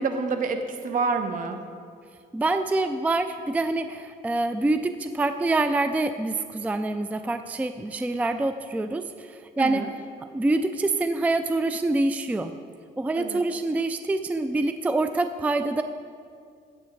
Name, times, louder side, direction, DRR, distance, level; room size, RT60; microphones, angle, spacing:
voice 1, 0.0-1.6 9.6-9.9 13.2-13.4, right 4 dB, 55° right, 7 dB, 1.0 m, -28 dB
voice 2, 2.3-9.8 10.3-12.5 13.0-15.8, right 2 dB, 10° right, 9 dB, 0.3 m, -26 dB
16.5 x 7.8 x 3.2 m, 2.3 s
cardioid pair, 110°, 17 cm